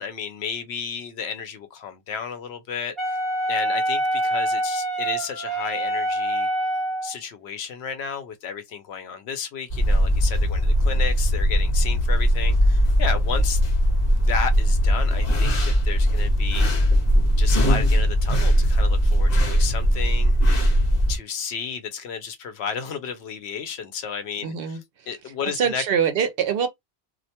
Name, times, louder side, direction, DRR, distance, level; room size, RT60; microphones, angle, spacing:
voice 1, 0.0-3.2 3.5-6.5 7.0-13.6 14.1-16.7 17.4-20.3 21.1-24.8 25.1-25.8, left 6 dB, 80° left, 0.9 m, -32 dB
Wind instrument woodwind instrument, 3.0-7.1, right 1 dB, ahead, 0.6 m, -25 dB
sound 1, 9.7-21.2, equal, 45° left, 0.8 m, -20 dB
voice 2, 24.4-24.8 25.6-26.7, right 7 dB, 65° right, 0.7 m, -23 dB
2.3 x 2.1 x 2.7 m
omnidirectional pair, 1.1 m